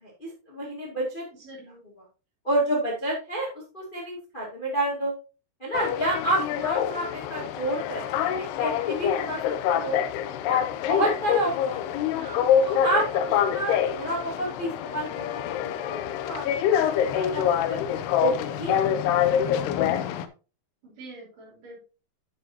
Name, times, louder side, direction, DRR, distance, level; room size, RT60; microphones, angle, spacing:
voice 1, 0.0-1.2 2.4-3.5 3.7-5.1 5.6-9.4 9.7-10.0 10.4-10.6 10.9-12.1 12.6-16.4 16.7-17.8 18.2-19.0, right 1 dB, 20° left, -3 dB, 1.6 m, -29 dB
voice 2, 1.4-1.8 12.1-12.5 20.8-21.8, right 2 dB, 55° right, -1 dB, 4.5 m, -44 dB
sound 1, 5.7-20.3, left 9 dB, 80° left, 2.6 m, -26 dB
9.9 x 7.5 x 2.8 m, 0.33 s
omnidirectional pair, 4.8 m